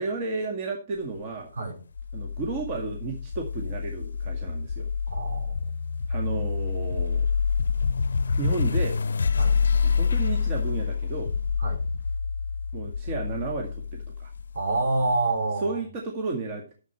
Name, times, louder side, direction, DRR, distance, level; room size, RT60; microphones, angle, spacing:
voice 1, 0.0-1.5 2.1-4.9 6.1-7.3 8.4-9.0 9.8-11.3 12.7-14.3 15.6-16.7, right 3 dB, 30° right, 1 dB, 2.0 m, -32 dB
sound 1, 2.0-15.1, left 5 dB, 70° left, 0.5 m, -27 dB
voice 2, 5.1-5.7 9.4-9.6 11.6-11.8 14.5-15.8, right 2 dB, 60° right, 1 dB, 4.8 m, -27 dB
11.0 x 7.5 x 4.4 m, 0.37 s
figure-of-eight pair, 135°, 0 cm